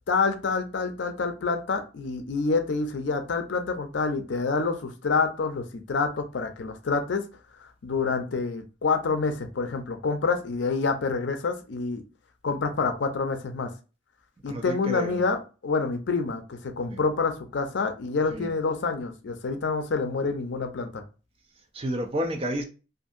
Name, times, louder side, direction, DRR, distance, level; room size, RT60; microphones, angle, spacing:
voice 1, 0.1-7.2 7.8-12.0 12.4-13.7 14.4-21.0, left 4 dB, 70° left, 0.5 m, -27 dB
voice 2, 14.5-15.2 16.9-17.0 18.3-18.5 21.7-22.6, equal, 30° right, 0.5 m, -30 dB
2.6 x 2.5 x 2.4 m
head